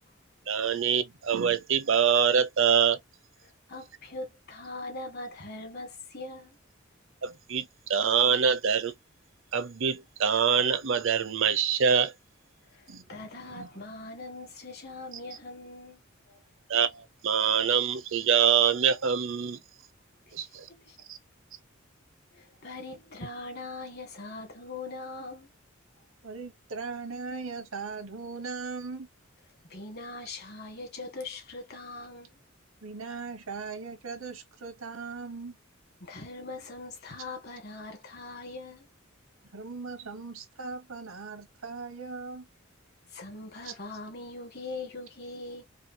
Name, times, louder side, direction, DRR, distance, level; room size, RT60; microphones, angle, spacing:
voice 1, 0.5-3.0 7.2-8.9 9.5-12.1 12.9-13.0 13.5-13.7 16.7-19.6 20.3-20.7 21.1-21.2, right 7 dB, 70° right, 0.7 m, -25 dB
voice 2, 3.4-6.6 12.7-16.0 16.3-16.4 20.3-20.6 20.9-21.0 22.3-25.5 29.7-32.4 36.0-38.9 43.1-45.6, left 2 dB, 55° left, 1.9 m, -41 dB
voice 3, 26.2-29.1 32.8-35.6 39.5-42.5 43.6-43.7, right 4 dB, 90° right, 1.2 m, -39 dB
4.8 x 2.3 x 2.8 m
head